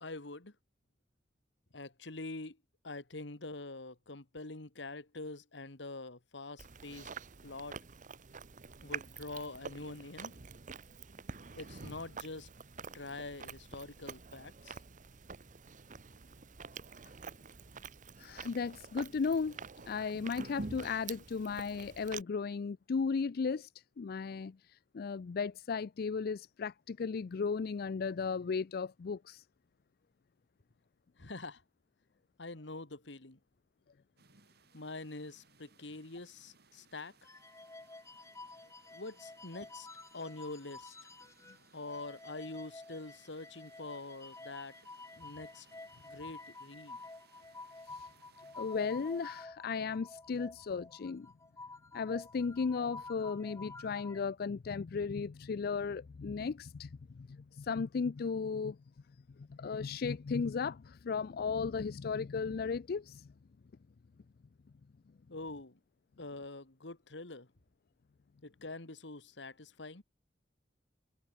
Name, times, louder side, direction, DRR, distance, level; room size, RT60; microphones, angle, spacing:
voice 1, 0.0-0.5 1.7-2.6 2.8-7.1 7.4-7.8 8.8-10.4 11.5-12.5 12.8-14.8 31.2-31.6 32.4-33.4 34.7-37.1 38.9-39.9 40.1-41.0 41.7-44.7 45.2-45.7 46.0-47.0 65.3-65.8 66.2-67.5 68.4-70.0, left 2 dB, 75° left, 2.0 m, -45 dB
Chewing mastication, 6.6-22.2, right 5 dB, 45° right, 1.0 m, -47 dB
voice 2, 18.2-23.7 24.0-29.4 47.9-48.1 48.6-51.3 51.9-58.8 59.4-63.3, left 5 dB, 55° left, 0.4 m, -36 dB
sound 1, 34.2-49.5, right 5 dB, 60° right, 5.5 m, -66 dB
sound 2, 37.2-41.6 41.9-54.2, left 3 dB, 15° left, 1.7 m, -50 dB
head